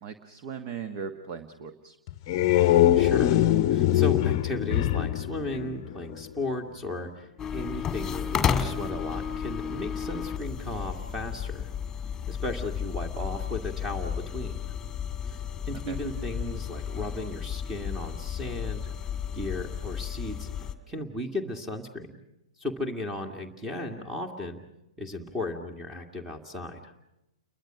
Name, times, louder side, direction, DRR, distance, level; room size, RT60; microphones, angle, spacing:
voice 1, 0.0-2.0 15.9-16.0, right 6 dB, 40° right, 9 dB, 1.4 m, -38 dB
sound 1, 2.1-6.3, left 13 dB, 40° left, 0.8 m, -23 dB
voice 2, 2.5-11.7 12.3-14.7 15.3-15.4 15.7-18.9 19.3-20.5 20.9-22.2 22.6-24.6 25.0-26.8, left 2 dB, 10° right, 6 dB, 2.1 m, -35 dB
sound 2, 7.4-20.7, left 8 dB, 15° left, 2.0 m, -33 dB
29.5 x 22.5 x 6.2 m, 0.88 s
figure-of-eight pair, 110°, 3 cm